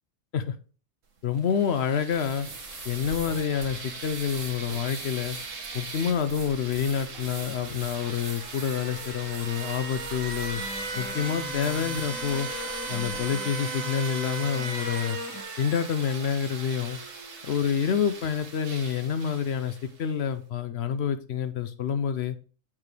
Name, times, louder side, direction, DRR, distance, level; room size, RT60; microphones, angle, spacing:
voice 1, 1.2-2.5 2.8-5.4 5.7-10.6 11.0-12.5 12.9-15.2 15.6-17.0 17.4-22.4, left 7 dB, 60° left, 0.8 m, -28 dB
sound 1, 1.4-20.1, right 3 dB, 80° right, 1.5 m, -38 dB
sound 2, 2.1-13.3, right 2 dB, 45° right, 1.7 m, -44 dB
sound 3, 10.6-15.4, left 2 dB, 15° left, 0.9 m, -41 dB
7.5 x 6.0 x 3.2 m
omnidirectional pair, 1.3 m